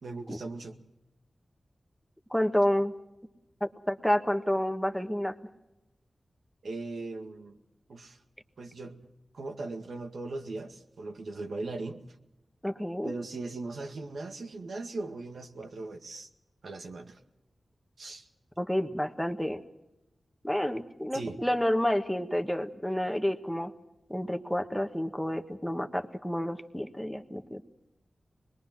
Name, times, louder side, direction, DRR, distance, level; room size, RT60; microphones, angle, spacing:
voice 1, 0.0-0.8 6.6-7.6 7.9-8.2 8.6-8.9 9.3-12.1 13.0-16.3 16.6-17.2 18.0-18.3 21.1-21.4, right 3 dB, 80° right, 4 dB, 2.1 m, -39 dB
voice 2, 2.3-2.9 3.6-5.3 12.6-13.1 18.6-19.6 20.4-23.7 24.1-27.6, equal, 5° left, 6 dB, 1.5 m, -29 dB
25.0 x 21.0 x 6.1 m, 0.94 s
wide cardioid pair, 85°, 0 cm